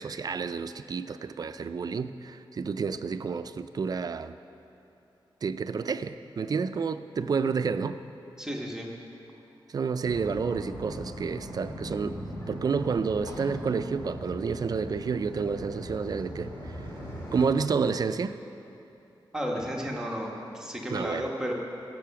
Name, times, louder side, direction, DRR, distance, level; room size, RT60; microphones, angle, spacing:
voice 1, 0.0-4.4 5.4-8.0 9.7-12.2 12.5-16.8 17.3-18.4 20.9-21.3, right 5 dB, 50° right, 11 dB, 0.4 m, -30 dB
voice 2, 8.4-8.9 19.3-21.5, equal, 5° right, -2 dB, 1.2 m, -33 dB
sound 1, 10.0-17.5, equal, 30° left, 3.4 m, -40 dB
16.5 x 7.6 x 5.8 m, 2.9 s
wide cardioid pair, 175°, 9 cm